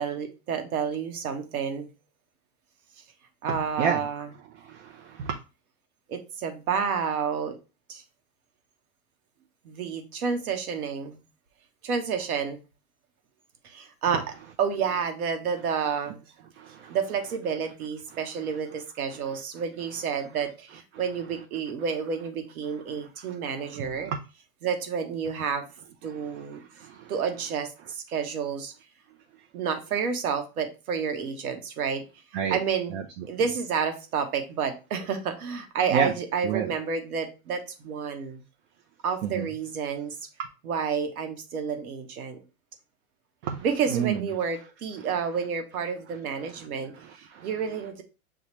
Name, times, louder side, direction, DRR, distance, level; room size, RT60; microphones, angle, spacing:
voice 1, 0.0-1.9 3.4-4.3 6.1-7.6 7.9-8.0 9.6-11.2 11.8-12.6 13.6-16.2 16.9-24.1 24.6-25.6 26.0-26.6 27.1-28.7 29.5-32.0 32.5-32.9 33.3-38.4 39.0-40.2 40.6-42.4 43.6-48.0, right 6 dB, 85° right, 6 dB, 1.2 m, -30 dB
voice 2, 4.6-5.4 16.6-17.0 23.8-24.2 26.1-26.2 26.8-27.1 32.3-32.6 32.9-33.0 35.9-36.1 36.4-36.7 39.2-39.5 43.4-43.6 43.9-44.3 47.3-47.5, right 7 dB, 55° right, 4 dB, 0.7 m, -29 dB
7.0 x 2.4 x 3.0 m, 0.31 s
supercardioid pair, 140°, 43 cm